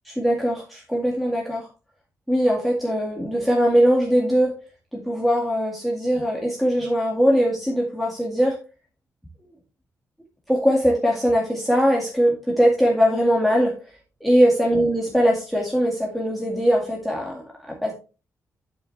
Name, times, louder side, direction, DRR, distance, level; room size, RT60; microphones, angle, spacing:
voice 1, 0.0-1.7 2.3-4.5 4.9-8.6 10.5-13.7 14.2-17.9, equal, ahead, -2 dB, 2.1 m, -21 dB
10.5 x 6.6 x 3.4 m, 0.32 s
wide cardioid pair, 175°, 6 cm